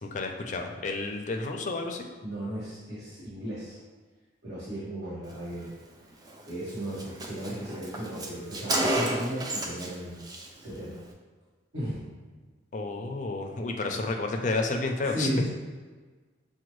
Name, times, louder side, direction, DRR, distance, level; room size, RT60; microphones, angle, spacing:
voice 1, 0.0-2.1 12.7-15.3, left 3 dB, 40° left, 3 dB, 0.4 m, -31 dB
voice 2, 2.2-3.8 4.4-5.7 6.5-10.3 10.6-11.0 11.7-12.0 15.0-15.5, equal, 65° right, -12 dB, 1.3 m, -35 dB
Car, 6.3-6.4 6.7-6.8 7.0-9.9 10.2-10.5, right 1 dB, 20° right, 0.4 m, -30 dB
6.0 x 2.2 x 3.0 m, 1.4 s
head